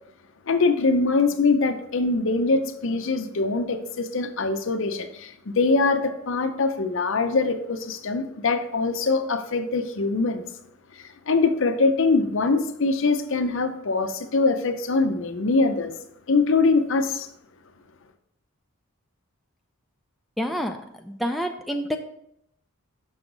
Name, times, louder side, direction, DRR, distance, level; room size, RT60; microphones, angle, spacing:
voice 1, 0.5-10.4 11.0-15.9 16.3-17.3, left 3 dB, 60° left, 0.6 m, -23 dB
voice 2, 20.4-20.8 21.0-22.0, equal, ahead, 0.3 m, -27 dB
6.4 x 6.1 x 3.8 m
head